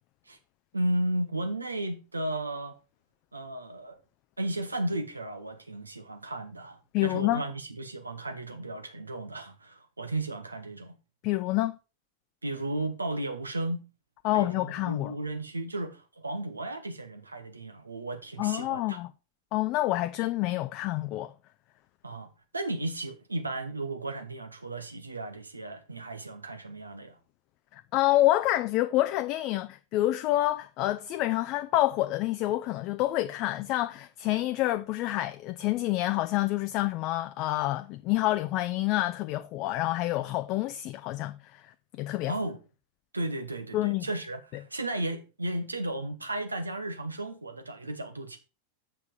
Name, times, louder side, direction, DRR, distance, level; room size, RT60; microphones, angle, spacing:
voice 1, 0.7-2.8 3.3-4.0 4.4-11.0 12.4-13.9 14.3-19.0 22.0-27.2 42.3-42.6 43.1-48.4, right 1 dB, 80° right, 1.1 m, -34 dB
voice 2, 6.9-7.4 11.2-11.8 14.2-15.1 18.4-19.1 19.5-21.3 27.7-42.4 43.7-44.1, left 16 dB, 40° left, 0.4 m, -28 dB
7.2 x 5.8 x 4.8 m
figure-of-eight pair, 90°, 0 cm